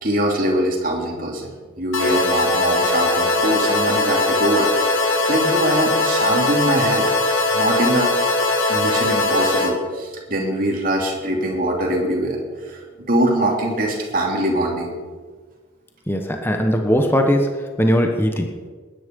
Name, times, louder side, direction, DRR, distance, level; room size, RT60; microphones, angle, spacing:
voice 1, 0.0-1.5 1.8-7.1 7.5-8.1 8.7-12.4 12.6-12.8 13.1-14.9, right 1 dB, 40° right, -1 dB, 2.8 m, -22 dB
sound 1, 1.9-9.7, left 2 dB, 70° left, 2.4 m, -20 dB
voice 2, 16.1-17.5 17.8-18.5, equal, 10° left, 4 dB, 1.1 m, -19 dB
19.5 x 10.5 x 5.3 m, 1.5 s
head